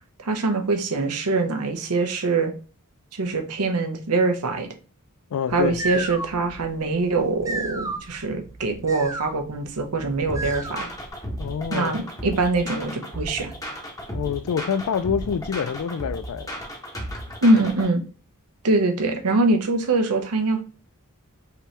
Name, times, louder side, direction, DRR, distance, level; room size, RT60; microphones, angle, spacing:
voice 1, 0.2-2.5 3.1-4.7 5.5-10.9 11.7-13.5 17.4-18.0 18.6-20.6, right 3 dB, 75° right, 0.8 m, -23 dB
voice 2, 5.3-6.1 11.4-12.0 14.1-16.6, left 7 dB, 70° left, 0.3 m, -27 dB
sound 1, 5.5-11.1, right 2 dB, 15° right, 0.5 m, -34 dB
sound 2, 10.3-17.9, equal, 15° left, 1.0 m, -34 dB
5.0 x 3.0 x 3.3 m
head